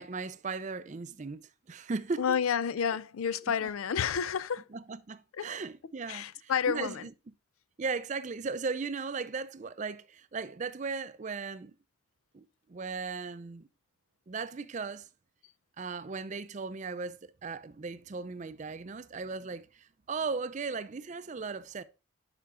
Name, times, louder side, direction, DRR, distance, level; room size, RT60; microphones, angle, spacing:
voice 1, 0.0-2.4 3.6-3.7 4.7-7.1 7.8-11.7 12.3-13.7 14.3-15.1 15.8-21.8, right 4 dB, 35° right, 0.4 m, -37 dB
voice 2, 2.2-4.7 5.3-5.5 6.1-7.0, left 7 dB, 85° left, 0.4 m, -30 dB
10.0 x 5.8 x 2.5 m
head